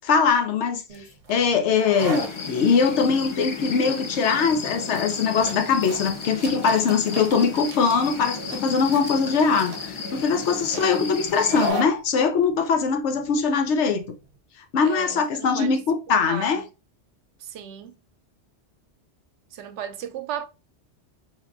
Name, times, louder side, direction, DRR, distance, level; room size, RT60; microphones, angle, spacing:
voice 1, 0.0-0.8 1.3-14.0 14.7-16.6, left 5 dB, 80° left, 1.0 m, -22 dB
sound 1, 0.9-14.3, right 2 dB, 50° right, 0.8 m, -37 dB
sound 2, 2.0-11.7, left 4 dB, 55° left, 0.3 m, -34 dB
voice 2, 10.7-11.1 14.8-15.8 16.3-16.6 17.4-18.0 19.5-20.5, right 9 dB, 80° right, 0.9 m, -35 dB
3.5 x 2.9 x 2.5 m
omnidirectional pair, 1.2 m